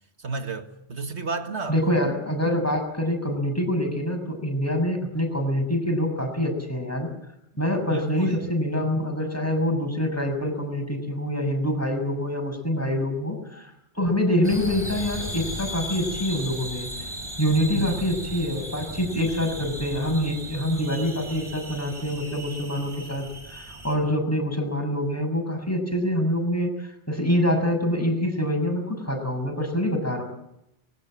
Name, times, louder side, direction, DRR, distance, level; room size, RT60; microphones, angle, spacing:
voice 1, 0.2-1.8 7.9-8.5 17.2-17.3 17.7-18.0, right 4 dB, 80° right, 2.1 m, -32 dB
voice 2, 1.7-7.1 7.6-16.9 17.4-30.2, equal, 15° left, 6.6 m, -25 dB
sound 1, 14.4-24.0, right 1 dB, 25° right, 5.2 m, -36 dB
24.5 x 21.5 x 7.7 m
omnidirectional pair, 1.1 m